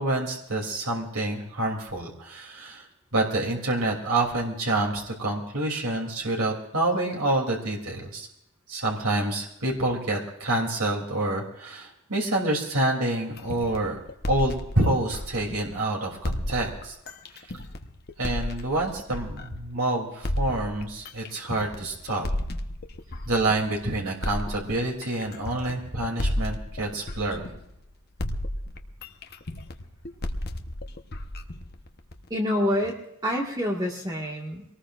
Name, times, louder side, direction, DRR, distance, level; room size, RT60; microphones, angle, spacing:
voice 1, 0.0-2.9 3.1-8.3 8.7-14.0 14.3-16.9 18.2-22.3 23.3-27.5, right 2 dB, 75° right, -1 dB, 3.0 m, -27 dB
sound 1, 13.4-15.8 16.2-19.8 20.2-23.8 24.2-27.9 28.2-32.3, left 1 dB, 45° left, 1.0 m, -33 dB
voice 2, 32.3-34.6, left 1 dB, 15° right, -1 dB, 1.8 m, -27 dB
23.5 x 19.0 x 2.5 m, 0.80 s
head